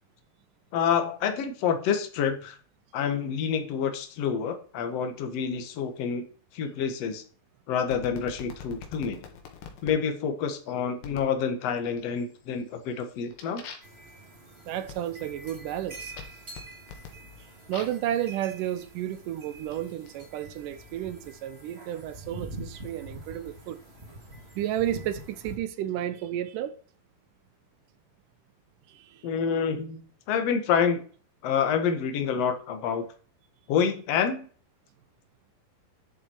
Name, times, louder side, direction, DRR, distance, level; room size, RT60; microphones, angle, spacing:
voice 1, 0.7-2.6 2.9-6.2 6.5-7.2 7.7-9.2 9.8-13.6 29.2-31.0 31.4-33.0 33.7-34.5, left 7 dB, 55° left, 2.1 m, -28 dB
sound 1, 7.9-10.0 11.0-11.4 11.8-12.3 12.7-18.1 18.9-20.1, left 7 dB, 80° left, 3.5 m, -46 dB
sound 2, 13.8-25.6, right 2 dB, 20° right, 1.8 m, -45 dB
voice 2, 14.7-16.1 17.7-23.8 24.6-26.8 28.9-29.2, right 11 dB, 75° right, 2.1 m, -32 dB
11.0 x 7.1 x 4.6 m
omnidirectional pair, 4.2 m